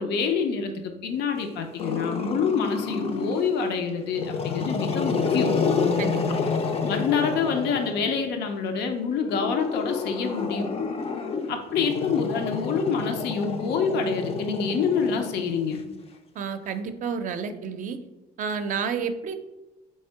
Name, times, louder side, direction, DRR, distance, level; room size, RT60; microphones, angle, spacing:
voice 1, 0.0-5.5 6.8-10.7 11.5-15.8, left 5 dB, 80° left, 5 dB, 0.6 m, -26 dB
Growling, 1.8-3.5 4.1-8.2 9.2-15.7, left 5 dB, 35° left, 0.4 m, -29 dB
voice 2, 16.4-18.0 18.4-19.4, right 6 dB, 50° right, 9 dB, 0.5 m, -30 dB
3.6 x 3.2 x 4.5 m, 1.0 s
cardioid pair, 110°, 17 cm